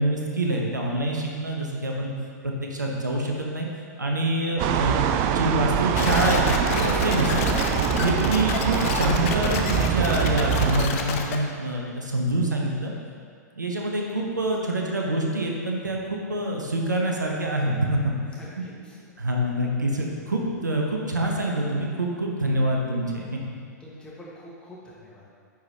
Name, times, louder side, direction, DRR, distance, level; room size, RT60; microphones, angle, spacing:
voice 1, 0.0-2.1 2.4-3.7 4.0-7.5 8.0-12.9 13.6-18.1 19.2-23.4, right 1 dB, 80° right, -1 dB, 1.0 m, -26 dB
sound 1, 4.6-10.9, right 9 dB, 35° right, 0.3 m, -24 dB
sound 2, 6.0-11.4, left 6 dB, 50° left, 0.7 m, -28 dB
voice 2, 18.3-19.0 23.8-25.3, equal, 10° left, -6 dB, 1.6 m, -45 dB
9.4 x 4.9 x 2.9 m, 2.1 s
figure-of-eight pair, 105°, 10 cm